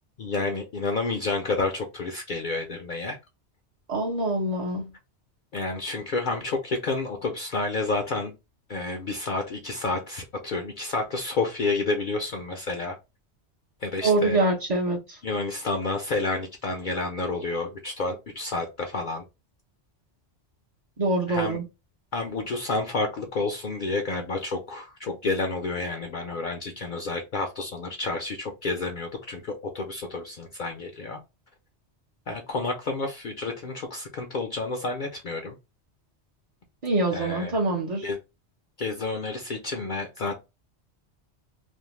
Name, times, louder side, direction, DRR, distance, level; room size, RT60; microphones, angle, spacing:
voice 1, 0.2-3.2 5.5-8.3 8.7-13.0 13.8-14.4 15.2-19.2 21.3-21.6 22.1-31.2 32.3-35.5 37.1-37.6 38.0-38.2 38.8-40.3, left 3 dB, 60° left, 0.6 m, -30 dB
voice 2, 3.9-4.9 14.0-15.2 21.0-21.6 36.8-38.0, right 2 dB, 45° right, 0.6 m, -25 dB
2.5 x 2.1 x 3.0 m
omnidirectional pair, 1.2 m